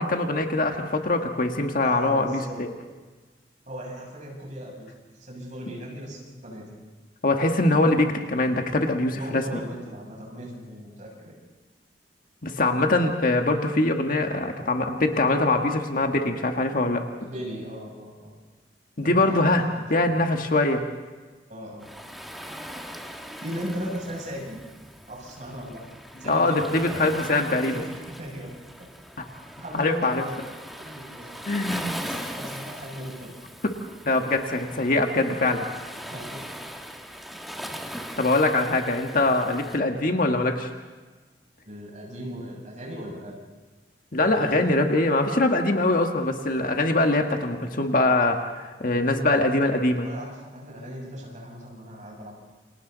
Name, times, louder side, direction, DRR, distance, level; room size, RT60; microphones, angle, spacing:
voice 1, 0.0-2.7 7.2-9.6 12.4-17.0 19.0-19.6 19.9-20.8 26.3-27.8 29.2-29.3 29.7-30.2 31.5-32.0 34.1-35.7 38.2-40.7 44.1-50.1, left 2 dB, 50° left, 4 dB, 1.7 m, -23 dB
voice 2, 1.8-2.6 3.7-4.9 5.2-6.8 9.2-11.4 17.2-18.3 19.0-20.2 21.5-21.9 23.4-24.6 25.1-25.8 26.2-27.0 27.7-28.5 29.6-30.4 30.8-31.5 32.0-33.4 36.1-36.5 41.6-43.4 44.2-44.7 50.0-52.3, equal, 45° right, -2 dB, 7.5 m, -38 dB
Waves surf, 21.8-39.8, equal, ahead, 1.6 m, -40 dB
29.0 x 26.5 x 4.1 m, 1.3 s
head